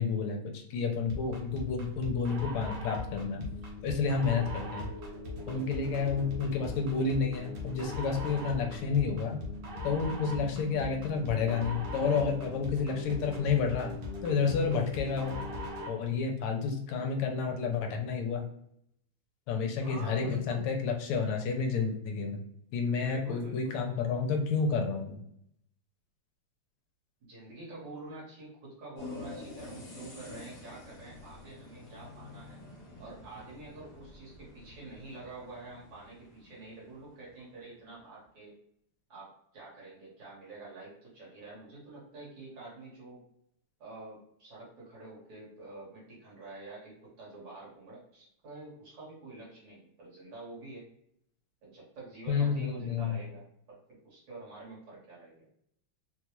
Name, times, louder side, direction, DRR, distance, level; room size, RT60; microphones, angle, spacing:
voice 1, 0.0-3.5 3.8-4.9 5.5-9.4 9.8-14.0 14.2-15.4 15.9-18.5 19.5-22.4 22.7-25.2 52.3-53.2, left 5 dB, 80° left, 3 dB, 1.5 m, -30 dB
sound 1, 1.1-16.0, left 2 dB, 85° right, 1.9 m, -40 dB
voice 2, 19.7-20.6 23.0-23.7 27.2-32.6 33.0-38.6 39.1-43.2 43.8-50.9 51.6-53.8 54.0-55.5, right 2 dB, 60° right, -6 dB, 2.1 m, -47 dB
sound 2, 28.9-37.3, left 2 dB, 45° left, 1.2 m, -48 dB
4.2 x 2.3 x 2.9 m, 0.72 s
omnidirectional pair, 2.4 m